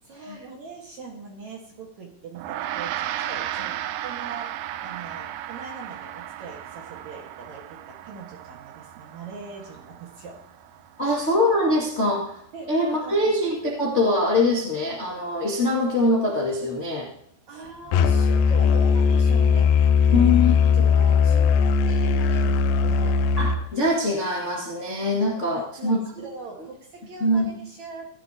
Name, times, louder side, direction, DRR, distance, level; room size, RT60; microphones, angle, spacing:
voice 1, 0.0-4.5 4.8-10.4 11.0-11.1 12.0-12.2 12.5-12.7 13.0-13.3 17.5-20.3 20.7-23.2 25.5-28.1, right 4 dB, 55° right, 0 dB, 2.3 m, -41 dB
Gong, 2.4-11.9, right 12 dB, 85° right, 2.7 m, -35 dB
voice 2, 11.0-12.2 12.7-17.1 20.1-20.5 23.4-26.0 27.2-27.5, left 2 dB, 35° left, -3 dB, 1.2 m, -23 dB
Musical instrument, 17.9-23.6, left 5 dB, 85° left, 2.0 m, -19 dB
16.0 x 11.5 x 2.8 m, 0.72 s
omnidirectional pair, 4.7 m